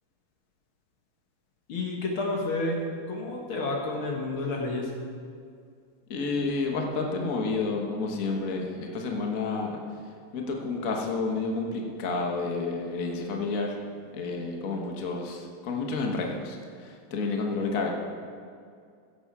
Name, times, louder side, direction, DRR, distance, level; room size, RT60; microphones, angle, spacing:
voice 1, 1.7-2.8 3.1-4.9, left 2 dB, 70° left, 0 dB, 2.4 m, -30 dB
voice 2, 6.1-9.8 10.3-13.8 14.1-17.9, left 3 dB, 45° left, 1 dB, 1.4 m, -30 dB
15.5 x 8.5 x 4.7 m, 2.3 s
omnidirectional pair, 2.4 m